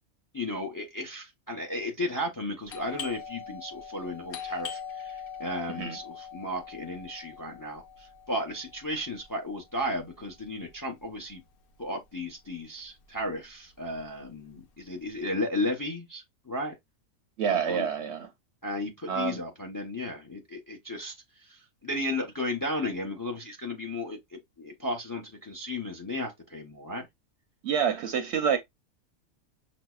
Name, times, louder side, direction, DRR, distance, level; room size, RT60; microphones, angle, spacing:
voice 1, 0.3-11.4 11.8-16.8 17.5-17.9 18.6-21.1 21.4-27.1, left 1 dB, 25° left, 0.5 m, -34 dB
Doorbell, 2.6-12.0 12.3-12.4 13.0-13.4 13.7-15.1, left 7 dB, 55° left, 0.7 m, -43 dB
voice 2, 17.4-18.3 19.1-19.4 27.6-28.6, right 7 dB, 65° right, 0.7 m, -27 dB
6.0 x 2.1 x 2.3 m
omnidirectional pair, 1.4 m